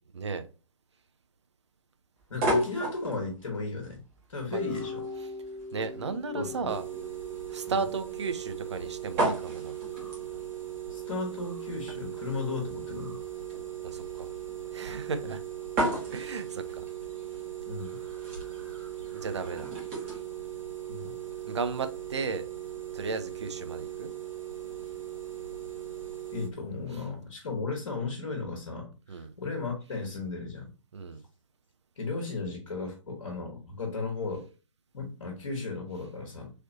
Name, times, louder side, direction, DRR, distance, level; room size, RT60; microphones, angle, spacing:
voice 1, 0.1-0.5 4.5-4.6 5.7-6.8 7.5-9.8 13.8-14.3 14.7-15.4 16.1-16.9 19.1-19.7 20.1-20.2 21.5-22.4 22.9-24.1 29.1-29.3 30.9-31.2, right 4 dB, 60° right, 0.6 m, -34 dB
sound 1, 2.2-20.2, right 1 dB, 25° right, 1.3 m, -36 dB
voice 2, 2.3-4.0 4.3-5.0 6.3-6.7 7.7-7.8 10.9-13.2 15.2-15.4 17.7-18.0 20.9-21.1 26.3-30.7 32.0-34.5 34.9-36.5, left 4 dB, 55° left, 1.1 m, -35 dB
sound 2, 4.6-7.8, left 3 dB, 20° left, 0.4 m, -40 dB
sound 3, 6.7-26.5, right 11 dB, 80° right, 0.9 m, -39 dB
3.2 x 3.0 x 2.6 m
figure-of-eight pair, 125°, 17 cm